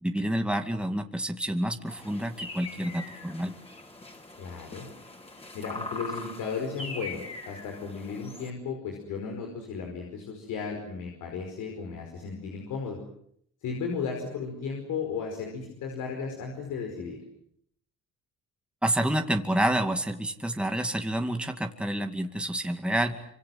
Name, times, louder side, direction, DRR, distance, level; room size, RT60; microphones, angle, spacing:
voice 1, 0.0-3.5 18.8-23.3, right 1 dB, 5° right, 5 dB, 2.3 m, -28 dB
sound 1, 1.9-8.5, left 2 dB, 20° left, 5.2 m, -42 dB
voice 2, 4.4-4.9 5.5-13.0 13.6-17.2, left 5 dB, 90° left, 2 dB, 5.1 m, -35 dB
25.5 x 25.5 x 7.8 m, 0.71 s
cardioid pair, 90°, 30 cm